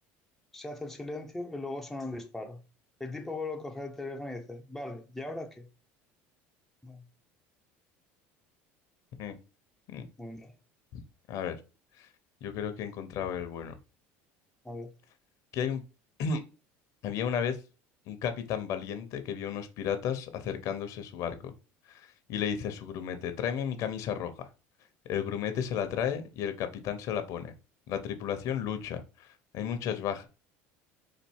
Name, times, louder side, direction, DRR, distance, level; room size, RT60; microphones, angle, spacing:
voice 1, 0.5-2.6 3.0-5.7 6.8-7.0 10.2-10.5 14.6-14.9, left 2 dB, 5° left, 0.7 m, -39 dB
voice 2, 12.4-13.8 15.5-15.8 16.2-16.4 17.0-17.6 18.1-21.5 21.9-22.0 22.3-24.5 25.1-27.5 27.9-29.3 29.5-30.3, left 8 dB, 60° left, 0.9 m, -33 dB
4.1 x 2.6 x 4.6 m
supercardioid pair, 110°, 6 cm